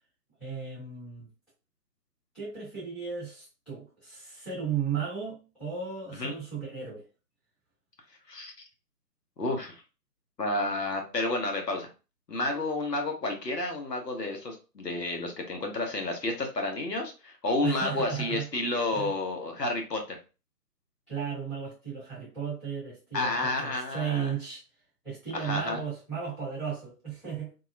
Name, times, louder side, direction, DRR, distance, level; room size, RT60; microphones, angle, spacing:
voice 1, 0.4-1.3 2.3-7.0 17.6-18.4 18.9-19.1 21.1-24.6 25.0-27.5, right 7 dB, ahead, 0.9 m, -35 dB
voice 2, 9.4-9.8 10.4-11.9 12.3-20.2 23.1-24.3 25.3-25.8, left 2 dB, 75° left, 1.0 m, -30 dB
2.7 x 2.0 x 2.5 m
figure-of-eight pair, 140°, 49 cm